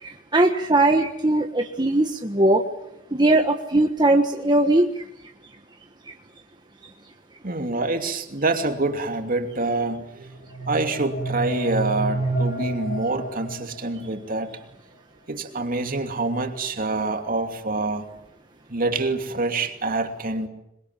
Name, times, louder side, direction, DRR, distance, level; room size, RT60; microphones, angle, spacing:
voice 1, 0.0-2.6 3.1-4.9, right 2 dB, 25° right, 3 dB, 1.4 m, -20 dB
voice 2, 7.4-10.3 10.7-14.5 15.3-18.1 18.7-20.5, right 2 dB, 45° right, 5 dB, 2.7 m, -26 dB
sound 1, 10.2-14.1, right 2 dB, 50° left, 4.4 m, -29 dB
27.0 x 22.0 x 7.5 m, 0.82 s
head